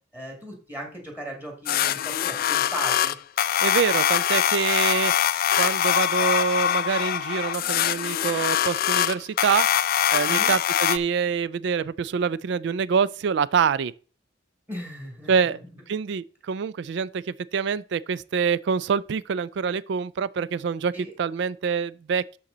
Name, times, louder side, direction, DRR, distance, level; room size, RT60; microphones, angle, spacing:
voice 1, 0.1-3.2 10.3-10.6 14.7-15.5 20.9-21.1, equal, 10° right, 2.1 m, -36 dB
sound 1, 1.7-11.0, left 10 dB, 50° left, 0.4 m, -23 dB
voice 2, 3.6-5.1 5.6-9.7 10.1-13.9 15.3-15.6 15.9-20.9 21.2-22.4, right 6 dB, 65° right, 0.3 m, -25 dB
12.5 x 4.2 x 3.9 m
head